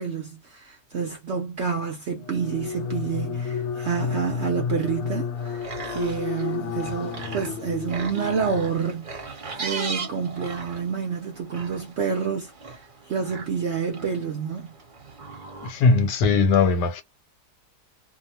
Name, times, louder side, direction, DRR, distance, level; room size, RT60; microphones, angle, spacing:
voice 1, 0.0-14.8, right 6 dB, 65° right, 0.7 m, -29 dB
sound 1, 2.2-9.1, left 7 dB, 70° left, 0.9 m, -32 dB
sound 2, 5.4-16.2, right 4 dB, 35° right, 0.9 m, -38 dB
voice 2, 15.6-17.0, left 4 dB, 85° left, 1.3 m, -19 dB
2.8 x 2.1 x 2.8 m
omnidirectional pair, 1.8 m